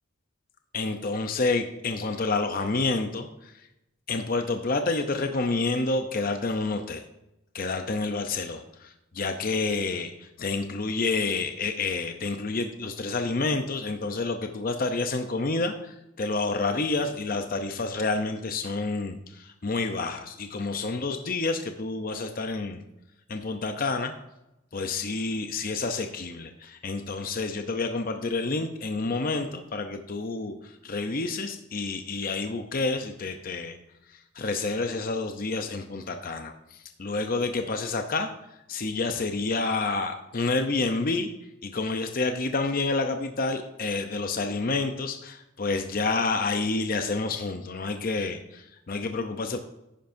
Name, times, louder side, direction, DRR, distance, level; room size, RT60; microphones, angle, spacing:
voice 1, 0.7-3.7 4.1-7.0 7.5-22.8 23.3-24.1 24.7-33.8 34.1-38.3 38.7-41.3 41.6-49.6, left 3 dB, 45° left, 6 dB, 0.6 m, -29 dB
10.5 x 10.0 x 2.6 m, 0.91 s
head